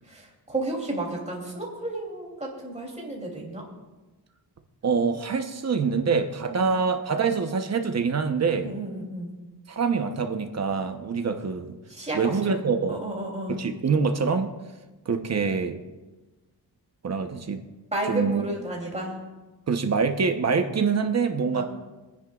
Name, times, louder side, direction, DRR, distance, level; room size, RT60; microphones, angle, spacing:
voice 1, 0.1-3.6 6.5-6.7 8.6-9.3 11.9-13.6 17.9-19.2 21.5-21.6, right 1 dB, 15° right, -2 dB, 3.1 m, -32 dB
voice 2, 4.8-8.7 9.7-11.7 12.1-13.0 13.5-14.5 15.1-15.8 17.0-17.6 18.1-18.4 19.7-21.6, right 5 dB, 40° right, 6 dB, 1.0 m, -25 dB
27.0 x 9.9 x 2.4 m, 1.2 s
wide cardioid pair, 145°, 41 cm